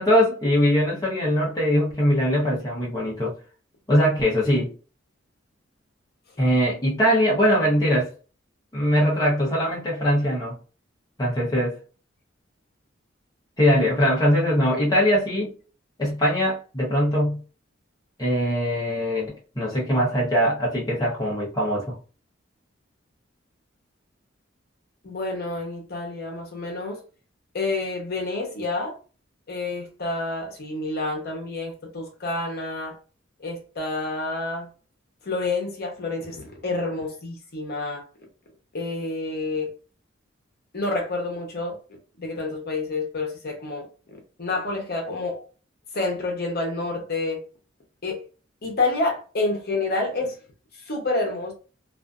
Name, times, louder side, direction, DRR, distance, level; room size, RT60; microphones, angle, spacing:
voice 1, 0.0-3.3 3.9-4.7 6.4-8.1 8.7-10.5 11.2-11.8 13.6-15.5 16.0-17.4 18.2-21.9, equal, 20° left, 0.7 m, -21 dB
voice 2, 25.0-27.0 27.5-28.9 29.5-33.0 33.4-34.7 35.2-38.0 38.7-39.7 40.7-41.7 42.2-45.4 45.9-47.4 48.0-48.2 48.6-50.4 50.8-51.5, left 2 dB, 50° left, 0.8 m, -28 dB
2.4 x 2.4 x 2.4 m
head